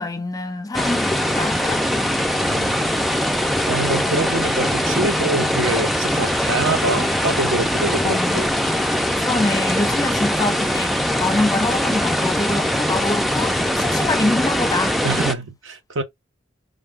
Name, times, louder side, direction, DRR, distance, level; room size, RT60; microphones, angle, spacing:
voice 1, 0.0-2.0 8.0-8.5 9.2-15.2, left 2 dB, 20° left, 0.8 m, -25 dB
sound 1, 0.7-15.3, equal, ahead, 0.4 m, -21 dB
voice 2, 2.5-2.8 3.7-8.5 15.0-16.0, right 2 dB, 80° right, 1.0 m, -25 dB
5.1 x 2.2 x 3.6 m
head